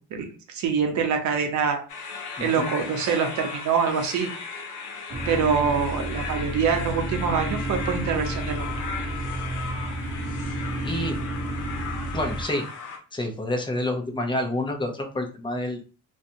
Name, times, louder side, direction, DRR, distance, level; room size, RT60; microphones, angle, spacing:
voice 1, 0.1-1.8 2.4-4.3 5.3-8.7, right 6 dB, 70° right, 4 dB, 0.7 m, -25 dB
sound 1, 1.9-13.0, left 5 dB, 85° left, 0.7 m, -36 dB
voice 2, 2.4-2.7 10.8-11.2 12.1-12.7 13.1-15.8, left 1 dB, 15° left, 3 dB, 0.6 m, -28 dB
sound 2, 5.1-12.4, right 1 dB, 35° right, 0.5 m, -31 dB
2.5 x 2.2 x 2.7 m, 0.36 s
cardioid pair, 90°, 30 cm